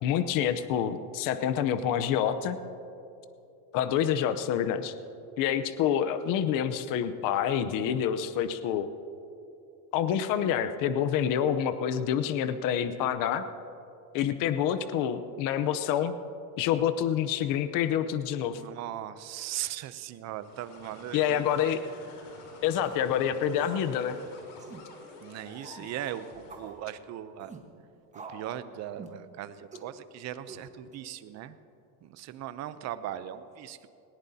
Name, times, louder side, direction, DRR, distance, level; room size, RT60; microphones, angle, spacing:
voice 1, 0.0-2.6 3.7-4.9 5.4-8.9 9.9-13.4 14.1-16.1 16.6-18.6 21.1-21.8 22.6-24.2, left 9 dB, 50° left, 11 dB, 0.8 m, -27 dB
voice 2, 18.6-21.5 25.2-27.5 28.3-31.6 32.0-33.9, right 12 dB, 40° right, 13 dB, 0.6 m, -39 dB
sound 1, 20.3-26.8, left 3 dB, 80° left, 4.0 m, -50 dB
sound 2, 22.7-23.0 23.6-23.9 24.1-24.2 24.6-24.8 25.6-25.9 26.5-26.7 27.4-27.6 28.1-28.5 29.0-29.2 29.7-29.9 30.5-30.9, right 4 dB, 15° right, 1.3 m, -46 dB
19.5 x 18.0 x 2.8 m, 2.7 s
supercardioid pair, 140°, 43 cm